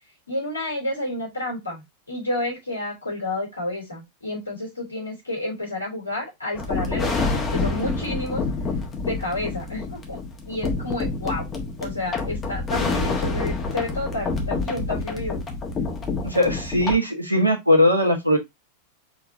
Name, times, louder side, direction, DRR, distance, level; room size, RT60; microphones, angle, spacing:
voice 1, 0.3-8.4 9.0-10.2 10.4-11.5 11.8-15.4, left 1 dB, 80° left, -1 dB, 2.9 m, -30 dB
sound 1, 6.5-17.0, left 3 dB, 25° left, 1.3 m, -27 dB
voice 2, 16.2-18.4, left 1 dB, 85° right, 3 dB, 1.2 m, -19 dB
5.1 x 3.6 x 2.7 m, 0.19 s
figure-of-eight pair, 90°, 0 cm